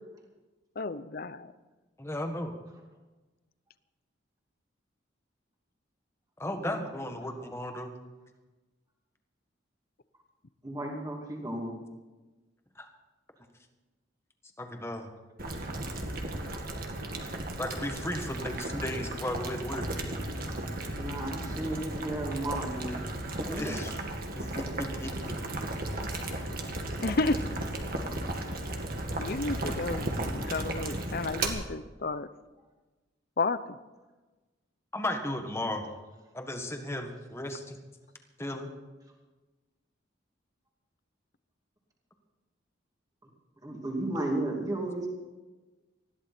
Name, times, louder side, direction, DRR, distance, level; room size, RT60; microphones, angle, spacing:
voice 1, 0.8-1.5 27.0-27.4 29.2-32.3 33.4-33.8, left 3 dB, 50° left, 14 dB, 0.7 m, -32 dB
voice 2, 2.0-2.6 6.4-7.9 12.8-12.9 14.6-15.1 17.6-19.9 23.6-23.9 24.3-25.3 34.9-35.8 36.3-37.8 38.4-38.7, left 1 dB, 15° left, 4 dB, 1.6 m, -35 dB
voice 3, 10.6-11.7 20.8-23.0 23.4-23.7 25.6-25.7 43.6-45.1, right 1 dB, 20° right, -1 dB, 2.6 m, -34 dB
Boiling, 15.4-31.5, right 1 dB, 50° right, 2.0 m, -35 dB
20.5 x 14.5 x 4.4 m, 1.2 s
head